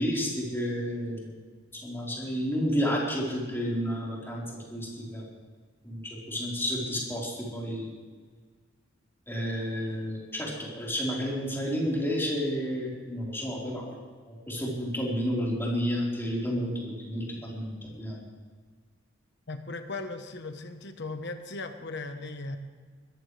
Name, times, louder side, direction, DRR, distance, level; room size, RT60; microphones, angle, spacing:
voice 1, 0.0-1.3 1.8-4.4 4.7-5.2 5.8-7.9 9.3-14.0 14.3-18.2, equal, 10° left, -5 dB, 4.4 m, -31 dB
voice 2, 19.5-22.6, left 3 dB, 60° left, 7 dB, 1.2 m, -37 dB
21.5 x 14.5 x 3.4 m, 1.6 s
head